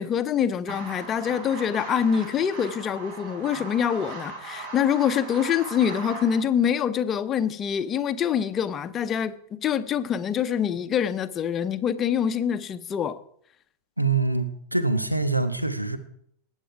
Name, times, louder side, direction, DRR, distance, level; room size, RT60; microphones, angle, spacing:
voice 1, 0.0-13.2, left 8 dB, 25° left, 0.8 m, -25 dB
sound 1, 0.7-6.4, right 3 dB, 45° right, 3.4 m, -39 dB
voice 2, 14.0-16.0, right 3 dB, 85° right, 1.1 m, -24 dB
19.5 x 8.2 x 4.7 m
figure-of-eight pair, 90°, 0 cm